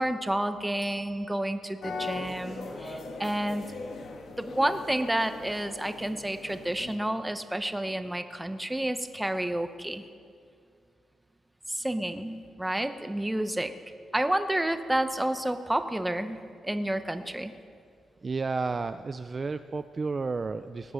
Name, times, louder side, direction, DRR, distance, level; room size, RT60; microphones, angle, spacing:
voice 1, 0.0-3.7 4.4-10.0 11.7-13.7 14.1-16.4 16.6-17.5, right 1 dB, 5° right, 9 dB, 0.7 m, -30 dB
Bicycle bell, 0.8-1.9 11.0-11.1, right 6 dB, 60° right, 1.6 m, -57 dB
sound 1, 1.8-6.9, left 3 dB, 65° left, 1.5 m, -40 dB
voice 2, 18.2-20.9, right 4 dB, 30° right, 10 dB, 0.3 m, -32 dB
18.0 x 9.6 x 6.4 m, 2.3 s
cardioid pair, 130°, 0 cm